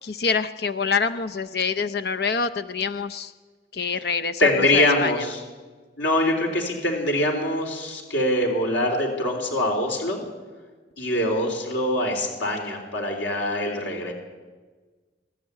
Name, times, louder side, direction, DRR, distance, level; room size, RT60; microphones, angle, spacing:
voice 1, 0.0-3.3 3.7-4.4 4.7-5.2, left 5 dB, 55° left, 10 dB, 0.6 m, -26 dB
voice 2, 4.4-5.4 6.0-10.2 11.0-14.1, left 1 dB, 85° left, 2 dB, 3.8 m, -23 dB
23.0 x 13.0 x 9.8 m, 1.3 s
head